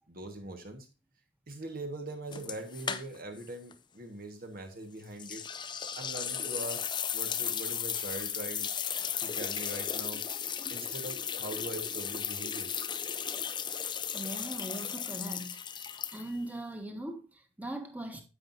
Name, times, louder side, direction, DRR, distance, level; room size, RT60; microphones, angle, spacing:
voice 1, 0.1-0.9 1.5-5.4 5.9-8.7 9.2-10.3 10.7-12.7, right 2 dB, 45° right, 1.3 m, -42 dB
sound 1, 2.3-3.4 3.7-3.8 5.2-16.5, left 8 dB, 25° left, 0.5 m, -35 dB
voice 2, 14.1-15.8 16.1-18.2, right 1 dB, 10° right, 1.4 m, -40 dB
9.8 x 7.8 x 2.6 m
head